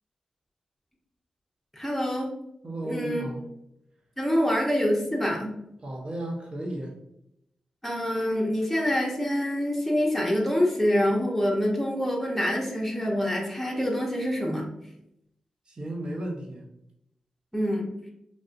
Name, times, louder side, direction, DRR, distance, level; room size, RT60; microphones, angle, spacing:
voice 1, 1.7-2.3 2.8-3.2 4.2-5.6 7.8-14.7 17.5-17.9, equal, 5° left, -3 dB, 0.8 m, -26 dB
voice 2, 2.6-3.4 5.8-6.9 15.7-16.7, right 1 dB, 50° right, -1 dB, 0.8 m, -34 dB
3.3 x 2.6 x 2.5 m, 0.81 s
supercardioid pair, 45°, 2 cm